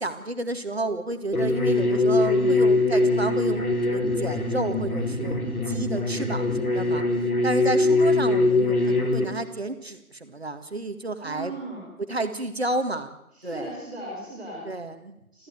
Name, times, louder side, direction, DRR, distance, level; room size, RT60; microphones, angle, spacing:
voice 1, 0.0-5.4 5.7-7.0 7.4-11.5 12.1-13.1 13.4-13.7 14.7-15.2, right 2 dB, 45° right, 9 dB, 2.0 m, -31 dB
sound 1, 1.3-9.2, left 2 dB, 80° left, 4.8 m, -22 dB
voice 2, 11.2-11.9 13.3-14.7 15.3-15.5, right 1 dB, 5° right, -13 dB, 3.2 m, -37 dB
26.0 x 14.5 x 9.3 m, 0.88 s
figure-of-eight pair, 170°, 43 cm